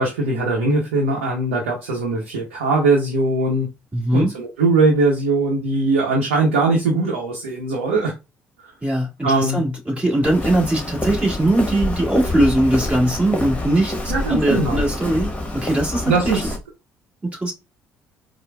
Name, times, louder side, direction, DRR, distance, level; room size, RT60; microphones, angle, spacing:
voice 1, 0.0-3.7 4.1-8.1 9.2-9.6 14.1-14.8 16.1-16.5, right 3 dB, 80° right, 0.7 m, -20 dB
voice 2, 3.9-4.3 8.8-16.4 17.3-17.5, right 1 dB, 20° right, 1.7 m, -20 dB
Walk footsteps, 10.2-16.6, left 1 dB, 20° left, 1.1 m, -27 dB
4.4 x 2.1 x 2.2 m
hypercardioid pair, 55°, 7 cm